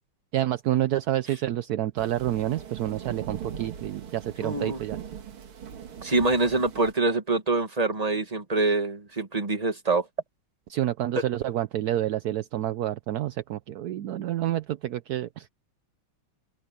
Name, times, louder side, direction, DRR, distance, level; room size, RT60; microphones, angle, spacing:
voice 1, 0.3-5.0 10.7-15.5, right 13 dB, 70° right, 0.9 m, -28 dB
sound 1, 2.0-6.9, right 8 dB, 85° right, 2.6 m, -40 dB
voice 2, 4.4-4.8 6.0-10.1, right 3 dB, 20° right, 1.9 m, -25 dB
open air
omnidirectional pair, 2.3 m